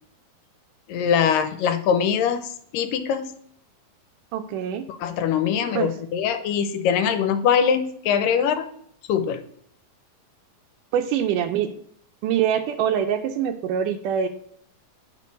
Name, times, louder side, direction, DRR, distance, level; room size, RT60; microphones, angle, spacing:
voice 1, 0.9-3.3 5.0-8.7 9.1-9.4, left 7 dB, 80° left, 10 dB, 2.3 m, -22 dB
voice 2, 4.3-4.8 5.8-5.9 10.9-11.7 12.2-14.3, right 9 dB, 80° right, 8 dB, 2.1 m, -24 dB
9.0 x 5.3 x 5.2 m, 0.66 s
omnidirectional pair, 4.0 m